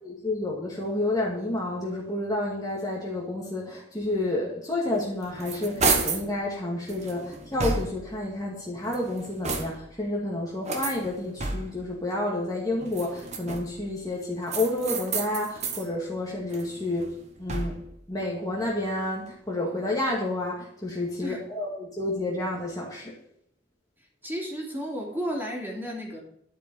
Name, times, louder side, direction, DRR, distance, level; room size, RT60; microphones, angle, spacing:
voice 1, 0.0-17.1 17.4-17.8 18.1-23.1, left 2 dB, 20° left, -3 dB, 2.2 m, -30 dB
sound 1, 5.0-6.3 6.9-8.2 8.8-10.0 10.6-11.9 12.8-13.8 14.5-15.9 16.3-18.0, right 4 dB, 40° right, 1.4 m, -31 dB
voice 2, 24.2-26.2, equal, 10° right, -2 dB, 3.1 m, -32 dB
12.0 x 5.4 x 8.9 m, 0.69 s
head